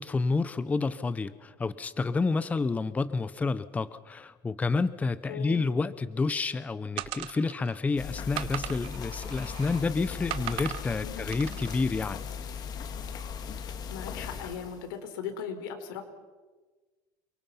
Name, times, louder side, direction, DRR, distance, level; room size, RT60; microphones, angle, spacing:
voice 1, 0.0-12.5, left 4 dB, 15° left, 15 dB, 0.7 m, -29 dB
voice 2, 5.3-5.7 11.0-11.3 13.9-16.0, left 7 dB, 85° left, 7 dB, 4.3 m, -38 dB
sound 1, 7.0-7.8 8.3-9.8 10.3-10.9 11.3-11.7, right 14 dB, 55° right, 1.3 m, -38 dB
sound 2, 8.0-14.9, left 6 dB, 35° left, 2.3 m, -38 dB
29.0 x 24.0 x 5.7 m, 1.3 s
cardioid pair, 140°, 11 cm